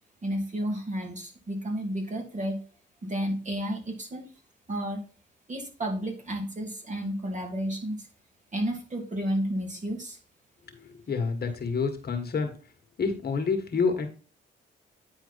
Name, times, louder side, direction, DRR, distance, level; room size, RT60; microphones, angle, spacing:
voice 1, 0.2-2.6 3.0-4.3 4.7-5.0 5.5-8.1 8.5-10.2, equal, 35° right, 2 dB, 2.8 m, -31 dB
voice 2, 10.7-12.5 13.0-14.1, left 5 dB, 50° left, 5 dB, 1.7 m, -28 dB
9.7 x 4.5 x 4.1 m, 0.36 s
cardioid pair, 75°, 20 cm